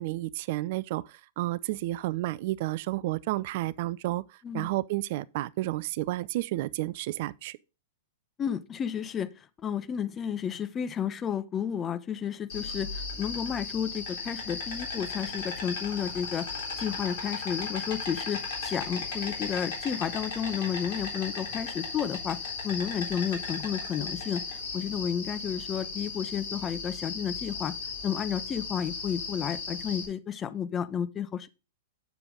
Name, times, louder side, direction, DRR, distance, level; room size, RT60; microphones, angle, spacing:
voice 1, 0.0-4.2 4.5-7.6, right 17 dB, 50° right, 0.4 m, -31 dB
voice 2, 8.4-27.7 28.0-31.5, left 8 dB, 25° left, 0.9 m, -32 dB
Insect, 12.5-30.1, left 4 dB, 55° left, 3.8 m, -36 dB
8.1 x 6.8 x 3.7 m
figure-of-eight pair, 105°, 0 cm